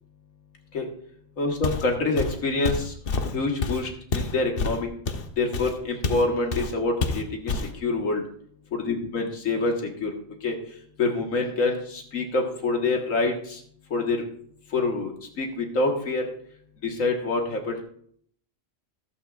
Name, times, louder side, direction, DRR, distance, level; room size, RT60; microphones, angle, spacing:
voice 1, 1.4-2.9 3.3-4.9 5.4-8.2 8.7-10.1 10.4-10.5 11.0-13.6 13.9-14.2 14.7-16.2 16.8-17.8, left 3 dB, 80° left, 2 dB, 1.9 m, -26 dB
Walk footsteps, 1.6-1.9 2.2-6.3 6.5-6.7 7.0-7.7, left 3 dB, 50° left, 1.0 m, -28 dB
14.5 x 12.5 x 2.4 m, 0.62 s
omnidirectional pair, 1.4 m